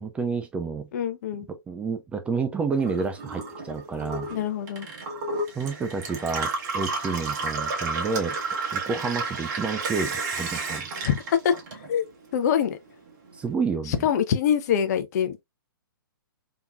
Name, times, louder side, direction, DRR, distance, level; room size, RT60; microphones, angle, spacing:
voice 1, 0.0-0.9 1.5-4.3 5.6-8.4 8.7-10.9 13.3-14.0, right 5 dB, 10° right, 0.3 m, -29 dB
voice 2, 0.9-1.5 4.3-4.9 11.0-11.5 11.9-12.0 12.3-12.8 13.9-15.4, left 8 dB, 45° left, 0.6 m, -24 dB
Gurgling / Water tap faucet / Sink (filling or washing), 2.7-12.2 12.6-13.4, right 3 dB, 50° right, 1.2 m, -32 dB
3.5 x 2.9 x 2.4 m
figure-of-eight pair, 125°, 12 cm